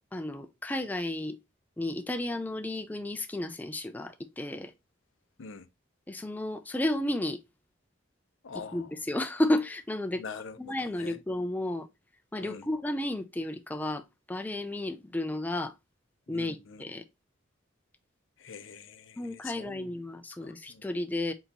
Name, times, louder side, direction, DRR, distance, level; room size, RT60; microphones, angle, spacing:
voice 1, 0.1-1.4 1.8-4.7 6.1-7.4 8.7-10.2 10.6-11.9 12.3-15.7 16.3-17.0 19.2-21.3, left 1 dB, 10° left, 0.4 m, -32 dB
voice 2, 8.4-8.9 10.2-11.2 12.4-12.7 16.3-16.8 18.4-19.9 20.4-20.8, left 5 dB, 75° left, 0.6 m, -44 dB
4.3 x 3.9 x 2.8 m
head